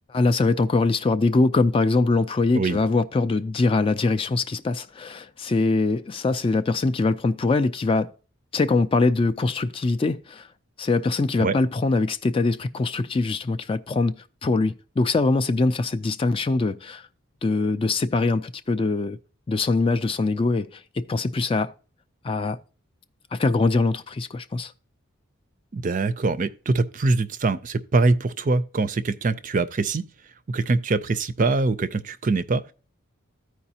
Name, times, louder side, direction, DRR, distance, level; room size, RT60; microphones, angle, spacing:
voice 1, 0.1-8.1 8.5-10.5 10.8-14.1 14.4-17.0 17.4-19.2 19.5-21.7 22.2-22.6 23.3-24.7, left 3 dB, 25° left, 0.3 m, -23 dB
voice 2, 25.7-30.0 30.5-32.7, right 3 dB, 35° right, 0.4 m, -23 dB
14.0 x 4.8 x 2.8 m
head